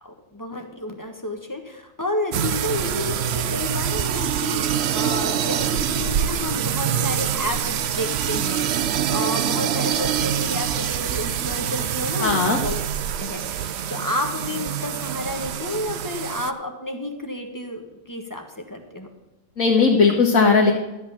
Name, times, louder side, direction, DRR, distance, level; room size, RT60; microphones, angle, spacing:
voice 1, 0.0-12.8 13.2-17.8 18.1-19.1, left 1 dB, 15° left, 4 dB, 1.3 m, -31 dB
sound 1, 2.3-16.5, right 9 dB, 60° right, 0.7 m, -25 dB
voice 2, 12.2-12.6 19.6-20.7, left 4 dB, 65° left, -1 dB, 1.7 m, -17 dB
12.5 x 8.1 x 5.7 m, 1.0 s
omnidirectional pair, 1.6 m